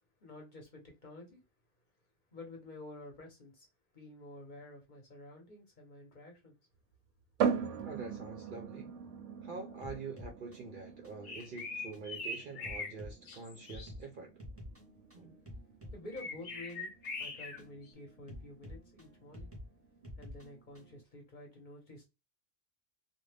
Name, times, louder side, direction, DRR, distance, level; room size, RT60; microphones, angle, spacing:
voice 1, 0.2-1.4 2.3-3.7 3.9-6.5 7.8-7.9 15.9-16.9 17.2-19.5 20.2-22.1, left 1 dB, 45° left, 1.0 m, -50 dB
sound 1, 7.4-20.9, right 7 dB, 90° right, 0.9 m, -41 dB
voice 2, 7.9-8.9 9.4-14.3 15.1-15.4, right 4 dB, 55° right, 0.6 m, -46 dB
sound 2, 9.8-21.0, left 1 dB, 15° right, 0.7 m, -51 dB
sound 3, 11.2-12.9 13.3-13.9 16.1-17.6, left 3 dB, 75° left, 1.1 m, -42 dB
2.5 x 2.2 x 3.2 m
omnidirectional pair, 1.2 m